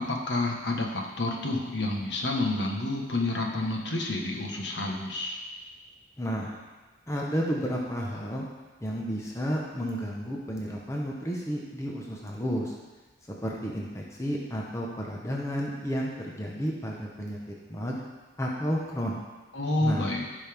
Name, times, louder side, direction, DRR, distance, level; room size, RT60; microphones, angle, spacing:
voice 1, 0.0-5.4 19.5-20.3, left 2 dB, 60° left, 0 dB, 1.3 m, -29 dB
voice 2, 6.2-6.5 7.1-8.5 8.8-12.7 13.4-17.4 17.7-18.0 18.4-19.2 19.8-20.1, equal, 15° left, -2 dB, 1.0 m, -32 dB
15.5 x 5.6 x 3.5 m, 1.2 s
head